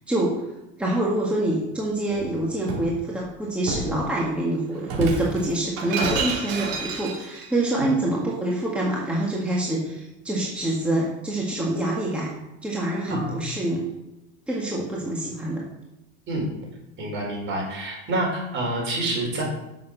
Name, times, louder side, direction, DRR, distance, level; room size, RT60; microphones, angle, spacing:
voice 1, 0.1-0.4 0.8-12.3 12.6-13.9 14.5-15.6, right 1 dB, 5° right, -4 dB, 1.7 m, -26 dB
Shatter, 2.1-2.9 3.7-4.0 4.8-7.5, right 4 dB, 75° right, 3.9 m, -29 dB
voice 2, 13.1-13.4 16.3-16.4 17.0-19.4, right 2 dB, 35° right, -1 dB, 4.9 m, -27 dB
10.5 x 6.9 x 6.7 m, 0.93 s
supercardioid pair, 145°, 32 cm